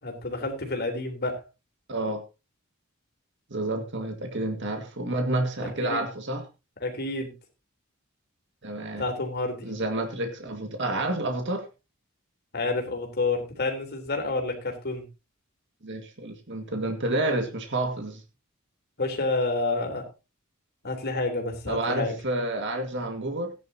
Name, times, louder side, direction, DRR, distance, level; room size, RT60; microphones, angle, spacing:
voice 1, 0.0-1.4 5.8-6.0 6.8-7.3 9.0-9.7 12.5-15.0 19.0-20.1 20.8-22.1, left 2 dB, 50° left, 3 dB, 3.6 m, -29 dB
voice 2, 1.9-2.2 3.5-6.5 8.6-9.1 9.6-11.7 15.8-18.2 21.7-23.5, right 2 dB, 55° right, 5 dB, 2.0 m, -29 dB
16.5 x 10.5 x 2.9 m, 0.27 s
head